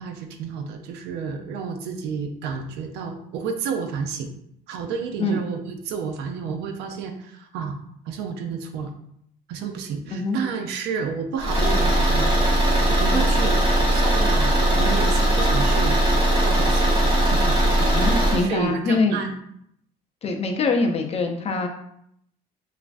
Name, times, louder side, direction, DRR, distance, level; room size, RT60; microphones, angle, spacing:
voice 1, 0.0-4.3 4.7-7.8 8.1-8.9 9.5-12.3 12.9-13.6 13.9-16.0 16.4-17.7 18.3-19.3, right 6 dB, 85° right, 6 dB, 0.4 m, -30 dB
Car / Engine, 11.4-18.5, right 1 dB, 30° right, 1.0 m, -19 dB
voice 2, 17.8-19.2 20.2-21.7, left 3 dB, 35° left, 3 dB, 0.5 m, -23 dB
3.0 x 2.4 x 2.5 m, 0.72 s
cardioid pair, 110°, 17 cm